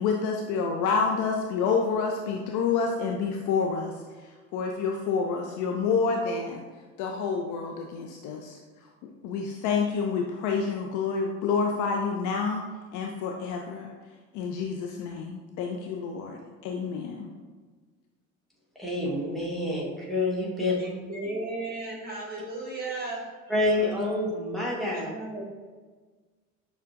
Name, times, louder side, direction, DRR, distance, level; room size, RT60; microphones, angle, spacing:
voice 1, 0.0-3.9 4.5-6.6 7.0-8.6 9.2-12.6 12.9-13.9 14.3-17.3, left 5 dB, 45° left, 1 dB, 0.4 m, -28 dB
voice 2, 18.8-20.8 23.5-25.1, left 2 dB, ahead, -5 dB, 1.2 m, -27 dB
voice 3, 20.7-23.3 24.9-25.4, right 2 dB, 20° right, -4 dB, 1.5 m, -35 dB
6.3 x 2.3 x 2.5 m, 1.4 s
figure-of-eight pair, 60°, 42 cm